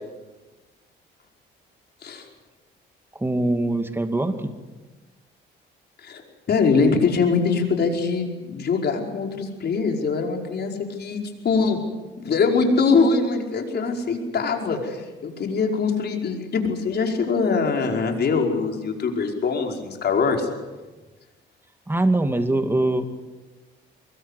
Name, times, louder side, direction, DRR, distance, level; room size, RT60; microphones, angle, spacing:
voice 1, 3.1-4.5 21.9-23.0, right 2 dB, 10° right, 7 dB, 2.3 m, -22 dB
voice 2, 6.5-11.8 12.2-20.5, left 4 dB, 55° left, 2 dB, 5.2 m, -23 dB
24.0 x 21.5 x 8.4 m, 1.2 s
cardioid pair, 90°, 20 cm